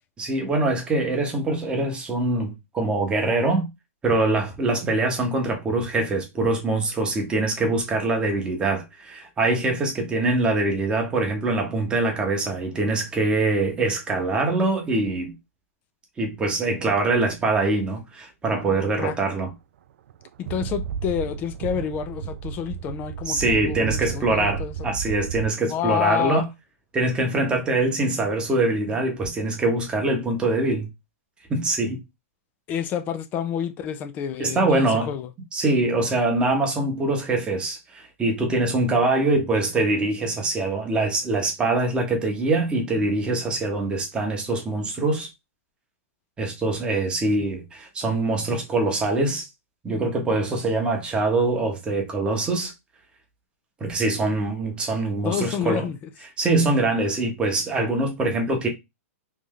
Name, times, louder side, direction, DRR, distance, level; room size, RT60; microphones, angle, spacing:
voice 1, 0.2-3.7 4.0-15.3 16.2-19.5 23.3-26.5 26.9-30.9 31.5-32.0 34.4-35.1 35.5-45.3 46.4-49.5 49.8-52.7 53.8-55.9 56.4-58.7, right 2 dB, 10° right, 0.9 m, -23 dB
sound 1, 17.2-17.4 19.5-19.6 20.1-25.5, right 7 dB, 60° right, 0.3 m, -33 dB
voice 2, 20.4-24.9 25.7-26.4 32.7-35.3 47.2-47.5 55.2-56.0, left 9 dB, 20° left, 0.4 m, -29 dB
3.2 x 2.6 x 3.7 m
hypercardioid pair, 155°, 8 cm